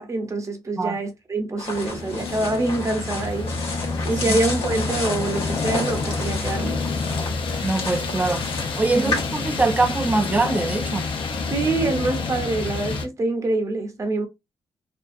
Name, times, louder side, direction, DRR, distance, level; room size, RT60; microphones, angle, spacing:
voice 1, 0.0-3.5 4.0-6.8 8.9-9.2 11.5-14.3, right 2 dB, 35° right, 0.8 m, -25 dB
sound 1, 1.6-9.3, left 3 dB, 80° left, 0.9 m, -32 dB
sound 2, 1.7-13.1, left 4 dB, 65° left, 0.6 m, -28 dB
voice 2, 7.6-8.5 8.8-11.1, right 3 dB, 15° right, 0.4 m, -23 dB
2.5 x 2.3 x 2.5 m
cardioid pair, 85°, 9 cm